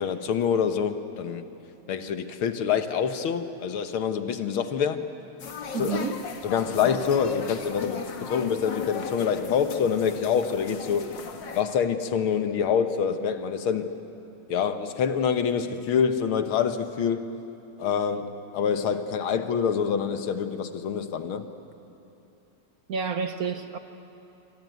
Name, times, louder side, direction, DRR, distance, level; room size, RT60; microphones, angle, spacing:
voice 1, 0.0-1.5 1.9-5.0 5.8-6.0 6.4-11.1 11.5-13.9 14.5-17.3 17.8-21.5, left 7 dB, 80° left, 8 dB, 2.0 m, -26 dB
sound 1, 5.4-11.6, left 6 dB, 60° left, 2.1 m, -36 dB
voice 2, 5.7-6.2 22.9-23.8, right 5 dB, 55° right, 8 dB, 1.2 m, -29 dB
25.5 x 24.5 x 9.3 m, 2.9 s
omnidirectional pair, 2.3 m